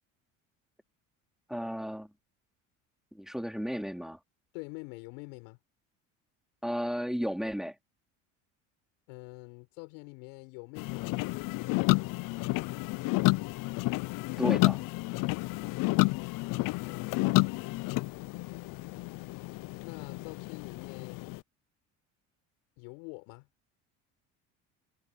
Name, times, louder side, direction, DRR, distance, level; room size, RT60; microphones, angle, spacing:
voice 1, 1.5-2.1 3.1-4.2 6.6-7.7 14.4-14.8, equal, ahead, 3.3 m, -33 dB
voice 2, 4.5-5.6 9.1-12.1 16.8-17.6 19.8-21.3 22.8-23.5, left 31 dB, 80° left, 6.0 m, -46 dB
sound 1, 10.8-21.4, left 23 dB, 60° left, 0.5 m, -30 dB
supercardioid pair, 85°, 37 cm